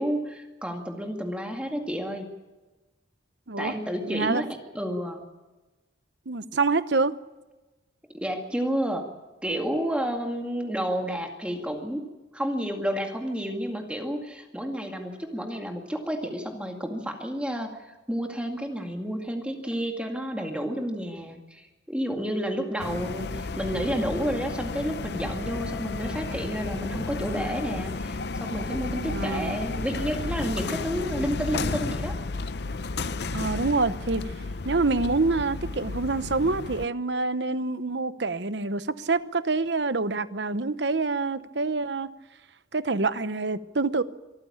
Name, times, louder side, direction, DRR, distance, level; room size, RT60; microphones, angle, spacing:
voice 1, 0.0-2.3 3.6-5.2 8.1-9.1 9.4-12.1 12.3-32.2, equal, 5° right, 2.1 m, -30 dB
voice 2, 4.1-4.5 6.3-7.1 29.0-29.5 33.3-34.2 34.6-42.1 42.7-44.0, right 3 dB, 65° right, 0.9 m, -26 dB
sound 1, 22.8-36.9, left 3 dB, 55° left, 0.6 m, -32 dB
24.0 x 14.5 x 8.6 m
head